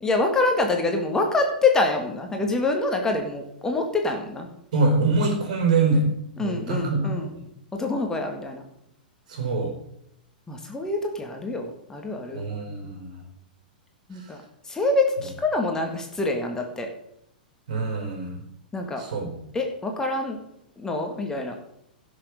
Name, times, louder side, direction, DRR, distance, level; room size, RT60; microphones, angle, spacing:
voice 1, 0.0-4.5 6.4-7.3 7.7-8.6 10.5-12.4 14.1-14.4 14.7-16.9 18.7-19.0 19.5-20.4 20.8-21.5, left 2 dB, 10° left, 3 dB, 1.8 m, -25 dB
voice 2, 4.7-7.4 9.3-9.7 12.3-13.2 14.1-14.3 17.7-18.4 19.0-19.3, right 3 dB, 55° right, 3 dB, 4.3 m, -25 dB
17.0 x 6.6 x 5.2 m, 0.77 s
figure-of-eight pair, 100°, 5 cm